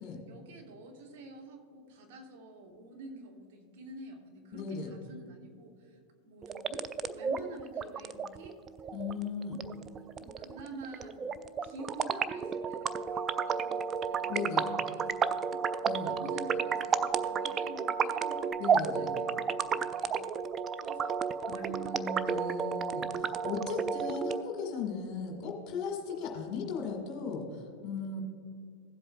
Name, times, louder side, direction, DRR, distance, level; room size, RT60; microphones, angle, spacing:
voice 1, 0.0-8.6 9.1-9.7 10.2-11.3 11.6-14.5 14.8-20.3 20.8-21.2 21.5-22.8, right 2 dB, 50° right, 2 dB, 1.2 m, -49 dB
voice 2, 4.5-4.9 8.9-9.6 14.3-14.7 15.9-16.1 18.6-19.1 21.5-28.2, left 5 dB, 35° left, 1 dB, 1.7 m, -37 dB
sound 1, 6.4-24.4, right 6 dB, 25° right, 0.3 m, -32 dB
15.5 x 7.8 x 2.3 m, 2.2 s
figure-of-eight pair, 90°, 0 cm